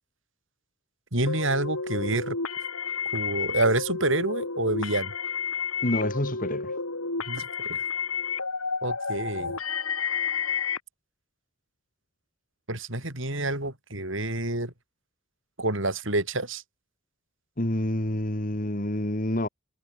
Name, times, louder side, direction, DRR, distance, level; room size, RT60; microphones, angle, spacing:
voice 1, 1.1-2.4 3.1-5.1 7.3-7.8 8.8-9.6 12.7-14.7 15.6-16.6, right 2 dB, 65° right, 5.9 m, -28 dB
sound 1, 1.3-10.8, left 5 dB, 90° left, 5.9 m, -31 dB
voice 2, 5.8-6.7 17.6-19.5, left 1 dB, 40° left, 2.0 m, -28 dB
head